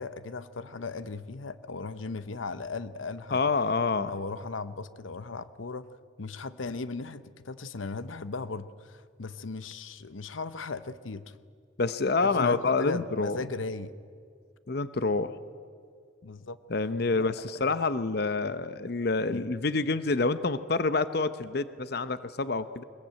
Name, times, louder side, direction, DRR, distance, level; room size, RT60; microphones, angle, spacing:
voice 1, 0.0-3.4 4.1-5.9 6.2-11.3 12.2-13.9 16.2-16.6 17.1-17.3 19.3-19.5, left 3 dB, 90° left, 14 dB, 0.8 m, -37 dB
voice 2, 3.3-4.1 11.8-13.4 14.7-15.4 16.7-22.8, left 3 dB, 55° left, 13 dB, 0.8 m, -27 dB
22.0 x 21.5 x 9.0 m, 2.2 s
head